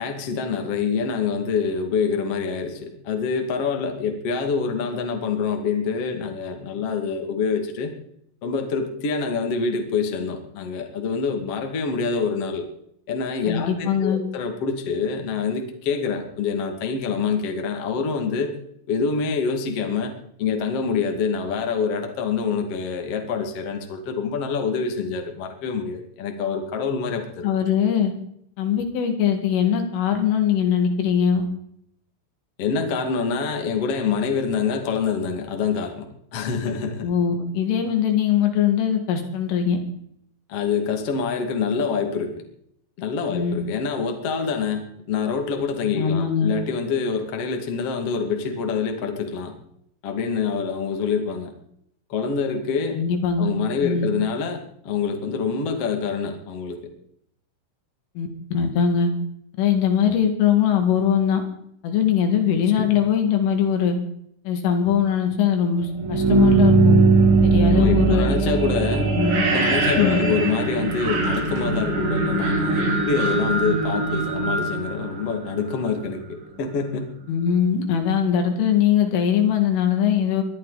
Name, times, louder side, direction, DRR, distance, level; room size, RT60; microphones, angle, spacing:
voice 1, 0.0-7.9 8.4-12.7 13.1-18.6 18.9-20.1 20.4-27.5 32.6-36.0 36.3-37.1 40.5-42.3 43.0-49.5 50.0-51.5 52.1-53.0 53.4-56.8 60.1-60.2 62.5-62.9 67.7-77.1, left 5 dB, 40° left, 4 dB, 2.3 m, -26 dB
voice 2, 13.5-14.2 27.4-28.1 28.6-31.5 37.0-39.8 43.3-43.5 46.0-46.5 52.9-53.5 53.8-54.1 58.2-59.1 59.6-61.4 61.8-64.0 64.5-67.0 67.4-68.3 69.2-69.4 70.0-70.2 77.3-80.4, left 8 dB, 75° left, 5 dB, 4.7 m, -21 dB
sound 1, 65.9-75.8, right 3 dB, 60° right, 7.0 m, -20 dB
22.5 x 13.5 x 4.2 m, 0.69 s
omnidirectional pair, 6.0 m